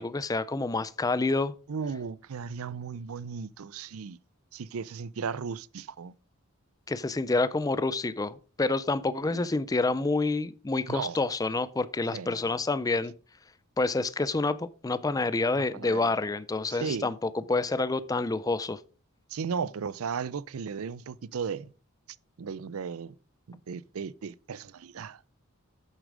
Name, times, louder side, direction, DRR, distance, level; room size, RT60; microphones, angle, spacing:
voice 1, 0.0-1.5 6.9-13.1 13.8-18.8, left 3 dB, 15° left, 0.4 m, -28 dB
voice 2, 1.7-4.2 4.5-6.1 9.2-9.5 10.9-11.2 12.1-12.5 15.5-16.1 16.7-17.1 19.3-21.7 22.4-23.1 23.5-25.2, right 6 dB, 75° right, 0.5 m, -36 dB
8.4 x 7.4 x 4.8 m
head